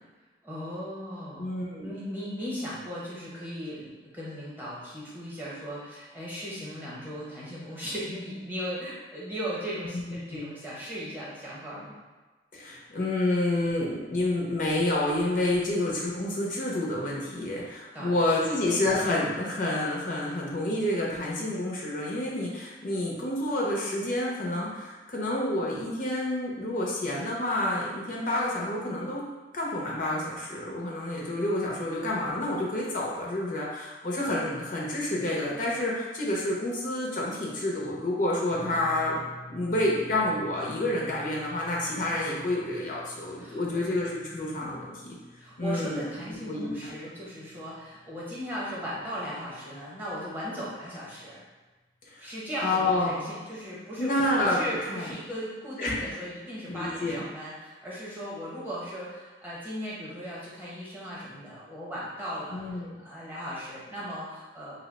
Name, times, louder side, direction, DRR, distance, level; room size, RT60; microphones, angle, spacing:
voice 1, 0.4-1.5 1.8-12.0 17.9-18.5 43.4-43.8 45.4-51.4 52.2-54.1 54.4-64.8, equal, 10° right, -7 dB, 0.8 m, -37 dB
voice 2, 1.4-1.9 9.9-10.0 10.3-10.5 12.5-29.2 29.5-39.2 39.5-45.1 45.6-46.0 46.5-46.8 52.1-52.3 52.6-53.2 54.0-54.6 54.9-55.1 55.8-55.9 56.7-57.2 62.5-63.0, left 1 dB, 50° left, -3 dB, 0.5 m, -29 dB
sound 1, 38.5-50.7 51.0-51.2 52.9-53.0, left 1 dB, 25° right, 0.5 m, -51 dB
2.8 x 2.1 x 3.9 m, 1.2 s
head